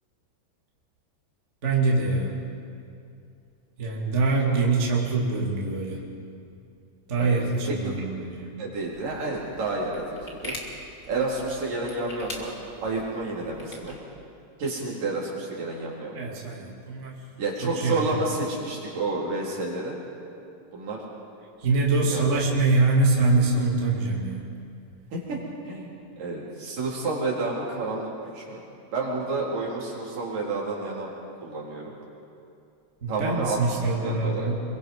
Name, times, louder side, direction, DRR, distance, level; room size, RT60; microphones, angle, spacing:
voice 1, 1.6-2.3 3.8-6.0 7.1-8.5 16.1-17.2 17.6-18.0 21.6-24.4 33.0-34.6, right 3 dB, 25° right, -3 dB, 1.6 m, -24 dB
voice 2, 8.6-10.6 11.1-12.5 12.8-14.0 14.6-16.1 17.4-20.0 20.7-21.0 22.1-22.4 25.1-25.4 25.6-25.9 26.2-28.1 28.3-28.6 28.9-31.1 31.4-31.9 33.1-34.5, right 3 dB, 45° right, -4 dB, 5.1 m, -30 dB
sound 1, 8.7-14.0, left 1 dB, 35° left, 1.3 m, -43 dB
29.5 x 23.0 x 5.6 m, 2.5 s
omnidirectional pair, 6.0 m